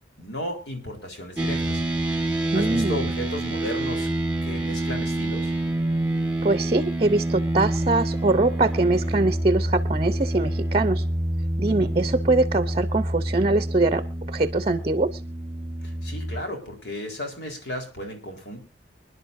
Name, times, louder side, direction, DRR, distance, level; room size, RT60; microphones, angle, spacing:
voice 1, 0.2-1.8 2.5-4.1 4.4-5.5 11.7-11.9 15.8-18.6, left 1 dB, 70° left, 3 dB, 3.9 m, -34 dB
sound 1, 1.4-16.4, right 1 dB, 5° right, 1.7 m, -27 dB
voice 2, 2.5-3.0 6.4-11.0 11.6-15.2, right 2 dB, 35° right, 12 dB, 0.7 m, -23 dB
25.5 x 11.0 x 2.6 m, 0.31 s
head